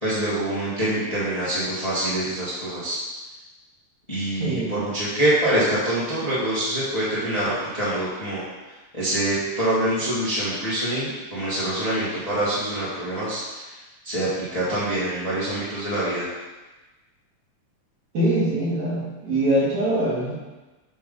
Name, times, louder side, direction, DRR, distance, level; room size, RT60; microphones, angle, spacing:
voice 1, 0.0-3.0 4.1-8.4 8.9-13.4 13.7-13.8 14.0-16.3, right 1 dB, 15° left, -10 dB, 1.3 m, -25 dB
voice 2, 4.4-4.9 18.1-20.3, right 1 dB, 65° right, -7 dB, 3.2 m, -23 dB
7.6 x 3.5 x 5.3 m, 1.2 s
omnidirectional pair, 3.5 m